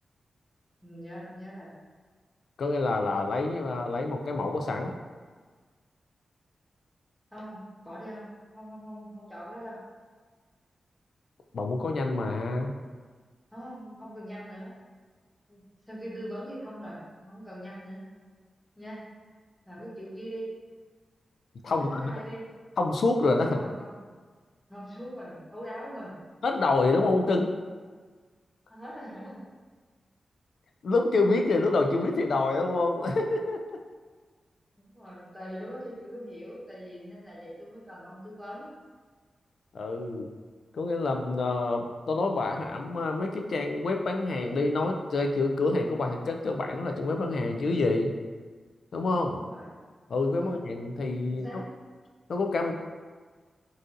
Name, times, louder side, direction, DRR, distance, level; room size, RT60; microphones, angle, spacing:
voice 1, 0.8-1.7 7.3-8.3 8.5-9.8 13.5-14.8 15.5-18.0 18.7-19.1 19.6-20.5 21.7-22.4 23.4-24.0 24.7-26.1 28.7-29.5 34.7-38.7 49.3-49.7 50.4-50.6 51.3-51.7, equal, 5° left, -7 dB, 1.0 m, -42 dB
voice 2, 2.6-4.9 11.5-12.7 21.6-22.1 22.8-23.6 26.4-27.5 30.8-33.6 39.7-40.3 40.7-48.1 48.9-49.4 50.1-51.5 52.3-52.7, left 3 dB, 70° left, 3 dB, 0.3 m, -27 dB
3.9 x 2.5 x 2.5 m, 1.5 s
wide cardioid pair, 110°, 0 cm